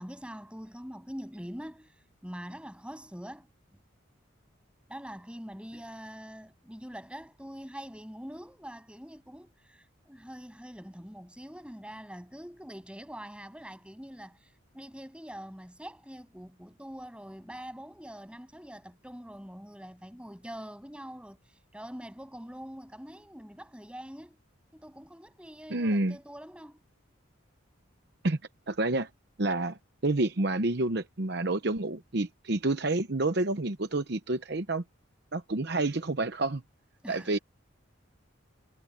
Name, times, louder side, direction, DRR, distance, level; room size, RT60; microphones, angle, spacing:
voice 1, 0.0-1.9 2.2-3.5 4.9-24.4 24.7-26.8 37.0-37.4, equal, 5° right, 7.8 m, -44 dB
voice 2, 25.7-26.2 28.2-28.4 28.7-29.1 29.4-34.8 35.3-36.6 37.1-37.4, right 2 dB, 55° right, 0.9 m, -29 dB
head